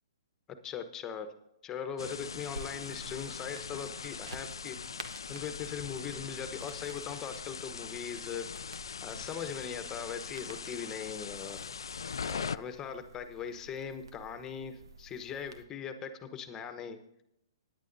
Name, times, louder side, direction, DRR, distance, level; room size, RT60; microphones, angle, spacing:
voice 1, 0.6-1.3 1.6-4.8 5.3-8.5 9.0-11.6 12.2-17.0, left 7 dB, 20° left, 8 dB, 1.1 m, -40 dB
sound 1, 2.0-12.6, left 6 dB, 80° left, 0.3 m, -41 dB
sound 2, 2.5-15.6, right 2 dB, 85° right, 1.3 m, -51 dB
22.0 x 10.5 x 2.7 m, 0.80 s
hypercardioid pair, 130°, 2 cm